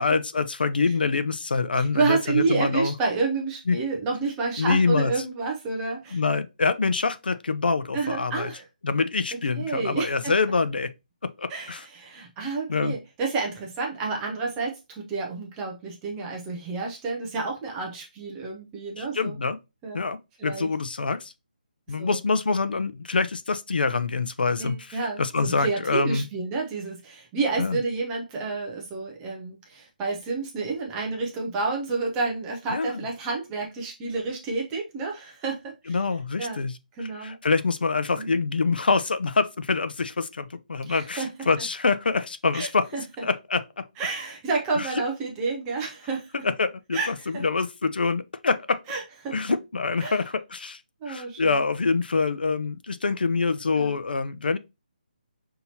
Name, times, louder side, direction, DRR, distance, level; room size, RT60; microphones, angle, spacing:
voice 1, 0.0-2.9 3.7-3.8 4.6-5.1 6.1-8.5 8.8-10.9 11.4-11.8 12.7-13.0 19.0-19.6 19.9-21.3 21.9-26.3 27.6-27.8 32.7-33.0 35.9-36.7 37.0-42.9 43.2-43.9 44.8-44.9 46.4-48.8 49.3-50.8 51.1-54.6, left 4 dB, 80° left, 0.6 m, -25 dB
voice 2, 1.8-6.2 7.9-8.6 9.6-10.3 11.5-19.4 19.8-20.0 20.4-20.7 21.9-22.2 24.6-36.0 36.4-36.6 37.0-37.4 38.2-38.4 40.9-41.5 42.5-43.2 44.0-46.4 46.9-47.4 48.9-49.4 50.0-50.2 51.0-51.6 53.8-54.0, right 4 dB, 10° right, 0.4 m, -30 dB
5.6 x 2.9 x 2.7 m
hypercardioid pair, 175°, 5 cm